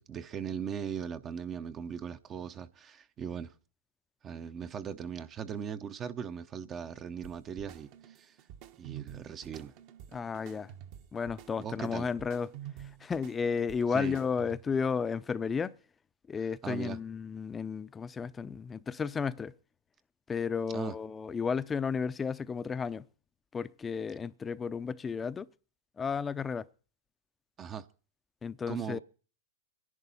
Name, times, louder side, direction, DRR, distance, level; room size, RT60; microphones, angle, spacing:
voice 1, 0.0-3.5 4.2-8.4 8.8-9.7 11.6-12.1 13.9-14.2 16.6-17.0 20.7-21.0 27.6-27.9 28.7-29.0, right 7 dB, 30° right, 0.7 m, -39 dB
sound 1, 7.2-14.8, right 11 dB, 50° right, 1.2 m, -49 dB
voice 2, 10.1-10.7 11.1-12.5 13.0-15.7 16.3-19.5 20.3-23.0 23.5-25.5 26.0-26.7 28.4-29.0, left 6 dB, 20° left, 0.6 m, -33 dB
23.5 x 11.0 x 4.1 m
hypercardioid pair, 115°, 0 cm